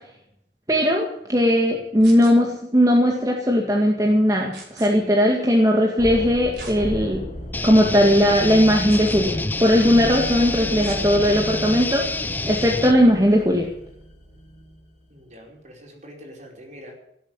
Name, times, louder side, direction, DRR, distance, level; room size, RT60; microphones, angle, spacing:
voice 1, 0.7-7.2 7.6-12.0 12.5-13.7, equal, 20° right, 0 dB, 2.0 m, -18 dB
sound 1, 2.0-2.3 4.5-4.9 6.5-6.8 7.4-7.5 8.9-9.3 10.8-11.0 12.6-12.8, right 4 dB, 75° right, 5.2 m, -40 dB
sound 2, 6.0-14.8, equal, 40° left, 5.0 m, -34 dB
sound 3, 7.5-12.9, left 2 dB, 10° left, 0.6 m, -28 dB
voice 2, 15.1-17.0, equal, 40° right, 1 dB, 4.7 m, -44 dB
17.5 x 8.3 x 8.8 m, 0.78 s
head